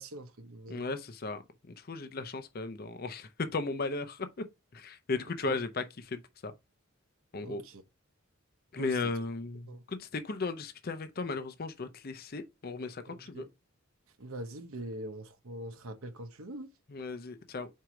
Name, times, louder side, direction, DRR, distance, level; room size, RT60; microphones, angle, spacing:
voice 1, 0.0-0.9 5.4-5.6 7.4-7.8 8.8-9.1 9.7-9.8 13.1-13.5 14.2-16.7, right 1 dB, 85° right, 1.0 m, -43 dB
voice 2, 0.7-1.4 1.8-4.3 4.7-6.5 7.3-7.6 8.7-13.5 16.9-17.7, left 3 dB, 45° left, 0.6 m, -36 dB
4.7 x 4.5 x 4.9 m
head